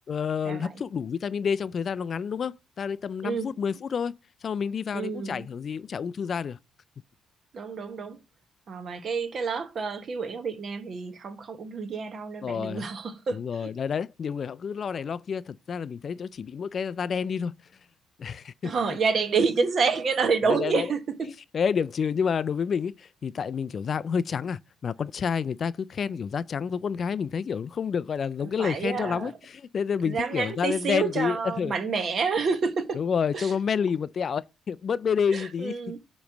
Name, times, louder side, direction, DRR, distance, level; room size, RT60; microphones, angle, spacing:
voice 1, 0.1-6.6 12.4-12.9 13.3-17.5 18.2-18.7 20.5-20.9 21.2-31.7 32.9-36.0, left 6 dB, 45° left, 0.3 m, -29 dB
voice 2, 4.9-5.5 7.5-8.2 8.7-13.7 18.6-21.3 28.6-29.3 30.0-33.0 33.3-33.5 35.3-36.0, right 5 dB, 45° right, 1.0 m, -28 dB
8.3 x 3.1 x 6.1 m
cardioid pair, 125°, 0 cm